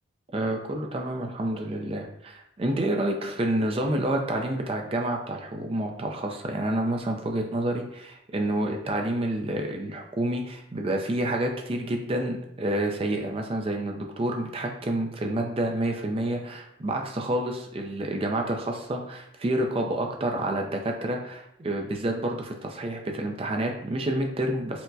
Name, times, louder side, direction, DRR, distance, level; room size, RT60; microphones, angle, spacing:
voice 1, 0.3-24.8, right 1 dB, 30° right, 2 dB, 0.4 m, -29 dB
4.4 x 2.1 x 2.6 m, 0.79 s
head